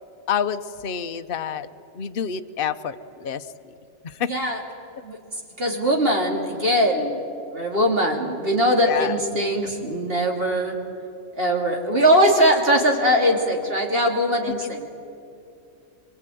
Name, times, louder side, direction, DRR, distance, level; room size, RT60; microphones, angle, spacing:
voice 1, 0.3-1.7 1.9-3.5 4.0-4.3 8.9-9.1, left 8 dB, 45° left, 9 dB, 0.9 m, -28 dB
voice 2, 4.3-4.6 5.0-5.2 5.6-7.3 7.5-10.8 11.3-14.9, equal, 45° right, 1 dB, 3.2 m, -21 dB
25.0 x 23.0 x 9.2 m, 2.6 s
omnidirectional pair, 1.4 m